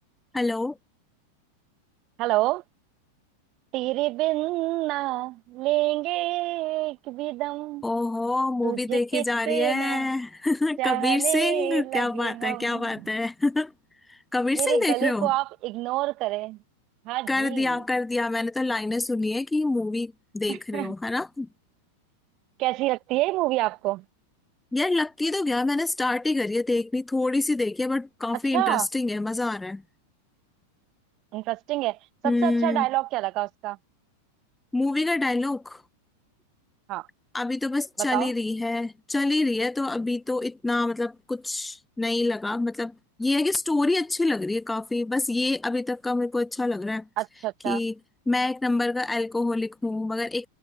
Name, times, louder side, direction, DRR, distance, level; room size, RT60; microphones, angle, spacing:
voice 1, 0.3-0.8 7.8-13.7 14.1-15.3 17.3-21.5 24.7-29.8 32.2-32.9 34.7-35.8 37.3-47.1 47.6-47.9 48.3-50.5, left 2 dB, 5° left, 1.0 m, -26 dB
voice 2, 2.2-2.6 3.7-7.9 8.6-10.1 10.8-13.1 14.5-16.6 17.1-17.8 20.5-20.9 22.6-24.0 28.5-28.9 31.3-33.8 36.9-37.1 38.1-38.3 47.2-47.8, right 19 dB, 40° right, 1.9 m, -27 dB
figure-of-eight pair, 90°, 0 cm